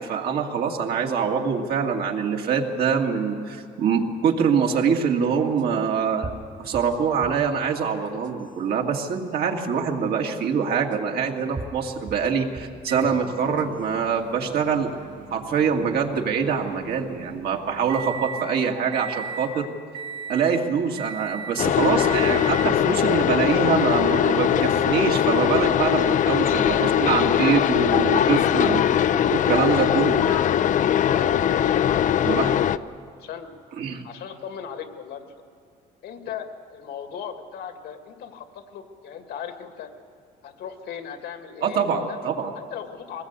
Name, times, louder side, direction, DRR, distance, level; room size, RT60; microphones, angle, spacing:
voice 1, 0.0-6.3 6.6-14.9 15.3-19.7 20.3-28.8 29.3-30.5 32.2-32.5 33.8-34.0 41.6-42.5, right 6 dB, 70° right, 1 dB, 2.4 m, -24 dB
sound 1, 4.2-4.3 5.6-5.7 6.2-7.5 8.1-8.6 9.6-9.7 10.9-11.0 11.6-12.9 13.4-13.9, right 3 dB, 25° right, 1.5 m, -39 dB
Microwave oven, 12.9-18.5 18.9-19.5 19.9-20.6 21.0-21.6 22.0-22.8 23.8-23.9 25.9-26.0, right 5 dB, 85° right, 3.3 m, -38 dB
sound 2, 21.6-32.8, left 10 dB, 50° left, 0.5 m, -21 dB
voice 2, 31.0-33.5 34.0-35.4 36.0-39.9 40.4-42.2 42.7-43.2, left 8 dB, 75° left, 6 dB, 2.2 m, -37 dB
22.0 x 19.5 x 8.2 m, 2.2 s
cardioid pair, 110°, 17 cm